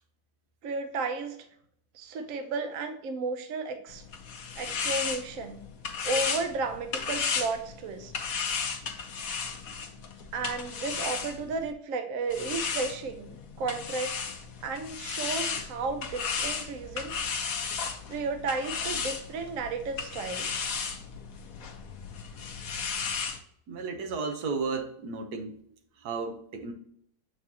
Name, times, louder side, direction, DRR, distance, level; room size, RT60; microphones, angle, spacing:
voice 1, 0.6-1.4 1.9-4.0 4.6-5.6 6.0-8.3 10.3-14.3 14.6-17.1 18.1-20.6, right 4 dB, 65° right, 1.1 m, -33 dB
sound 1, 3.9-11.7 12.3-23.4, left 6 dB, 65° left, 1.2 m, -34 dB
voice 2, 23.7-25.6 26.0-26.7, right 4 dB, 80° right, 1.5 m, -33 dB
7.6 x 4.8 x 2.8 m
omnidirectional pair, 1.7 m